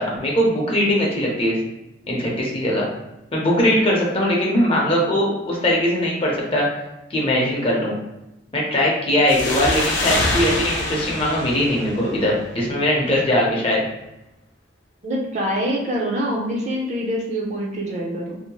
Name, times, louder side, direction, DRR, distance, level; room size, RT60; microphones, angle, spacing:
voice 1, 0.0-1.6 2.1-2.9 3.3-6.7 7.1-8.0 8.5-13.8, equal, 30° left, -3 dB, 0.6 m, -20 dB
sound 1, 9.3-12.7, left 2 dB, 80° left, 0.5 m, -25 dB
voice 2, 15.0-18.4, equal, 40° right, -2 dB, 0.5 m, -25 dB
2.7 x 2.1 x 2.8 m, 0.92 s
head